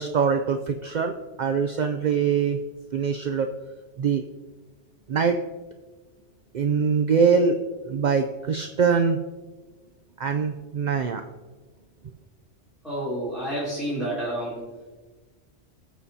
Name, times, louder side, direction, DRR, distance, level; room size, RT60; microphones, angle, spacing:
voice 1, 0.0-2.6 2.9-3.5 4.0-4.2 5.1-5.4 6.5-7.6 7.9-9.2 10.2-11.2, right 6 dB, 60° right, 5 dB, 0.5 m, -23 dB
voice 2, 12.8-14.6, right 1 dB, ahead, -10 dB, 3.2 m, -29 dB
19.5 x 7.2 x 2.8 m, 1.3 s
omnidirectional pair, 1.3 m